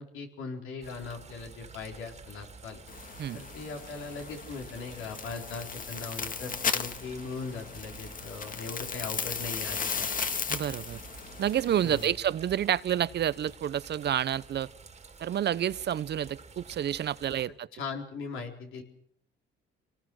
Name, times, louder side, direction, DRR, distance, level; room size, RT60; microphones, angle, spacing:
voice 1, 0.0-2.8 3.3-10.1 11.8-12.1 17.7-18.8, left 4 dB, 85° left, 3 dB, 4.2 m, -39 dB
sound 1, 0.8-17.5, right 5 dB, 35° right, 2.2 m, -50 dB
sound 2, 2.9-12.1, left 5 dB, 45° left, 1.7 m, -36 dB
voice 2, 10.5-11.0 11.4-14.7 15.2-17.7, right 10 dB, 60° right, 18 dB, 0.8 m, -29 dB
25.5 x 19.0 x 6.3 m, 0.63 s
cardioid pair, 90°, 20 cm